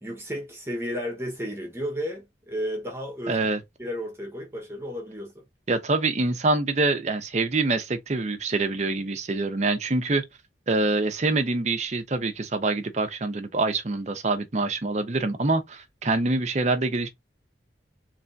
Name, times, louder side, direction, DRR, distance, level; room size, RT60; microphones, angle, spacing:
voice 1, 0.0-3.5 3.8-5.4, equal, 15° right, 1.0 m, -33 dB
voice 2, 3.3-3.6 5.7-10.2 10.7-17.1, right 3 dB, 40° right, 0.6 m, -25 dB
3.5 x 3.2 x 2.6 m
head